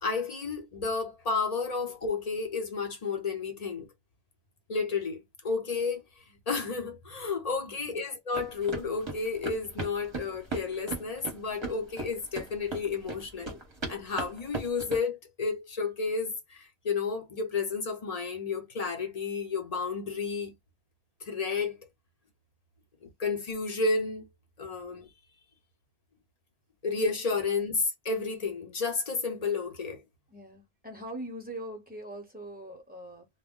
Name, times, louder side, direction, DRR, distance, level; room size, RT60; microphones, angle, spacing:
voice 1, 0.0-3.9 4.7-6.0 6.3-13.6 13.9-20.5 21.2-21.8 23.0-24.3 24.6-25.1 26.8-30.0, left 4 dB, 40° left, 0.7 m, -31 dB
voice 2, 7.7-8.0 30.3-33.3, right 1 dB, 10° right, 0.9 m, -42 dB
sound 1, 8.3-15.0, right 3 dB, 25° right, 0.9 m, -38 dB
2.2 x 2.1 x 3.6 m
omnidirectional pair, 1.2 m